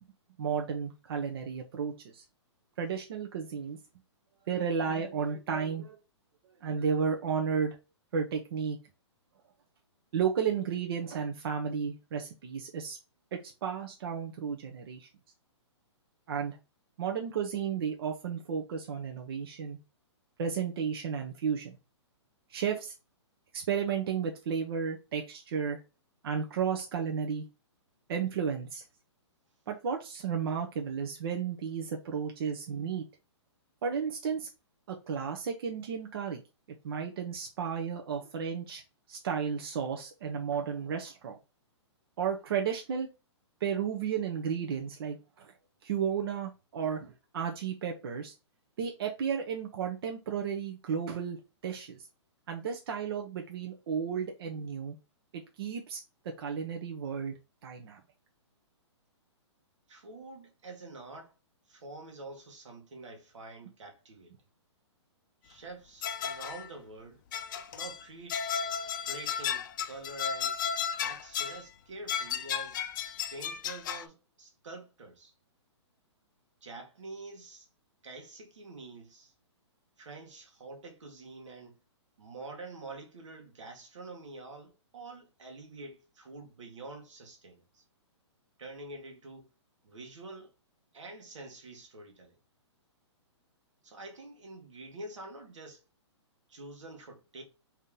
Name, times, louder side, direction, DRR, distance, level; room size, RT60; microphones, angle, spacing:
voice 1, 0.4-2.2 2.8-3.8 4.5-6.0 6.6-7.8 8.1-8.8 10.1-13.0 13.3-15.1 16.3-16.6 17.0-19.8 20.4-21.8 22.5-22.9 23.5-25.8 26.2-27.4 28.1-28.8 29.7-33.0 33.8-34.5 34.9-36.4 36.8-38.8 39.1-41.4 42.2-43.1 43.6-45.5 45.8-48.3 48.8-51.4 51.6-52.1 52.5-55.0 55.3-56.0 56.4-57.3 57.6-58.0, right 7 dB, 55° right, 0.8 m, -33 dB
voice 2, 59.9-61.3 61.7-64.3 65.4-67.2 67.7-68.4 69.0-70.6 71.0-72.9 73.3-75.3 76.6-77.7 78.0-79.3 80.0-81.8 82.2-87.8 88.6-89.5 89.8-90.5 90.9-92.3 93.8-95.8 96.5-97.4, right 2 dB, 85° right, 1.6 m, -47 dB
sound 1, 66.0-66.7 67.3-68.0 68.3-71.6 72.1-74.1, left 8 dB, 40° left, 0.5 m, -34 dB
3.6 x 2.8 x 3.6 m
hypercardioid pair, 155°, 15 cm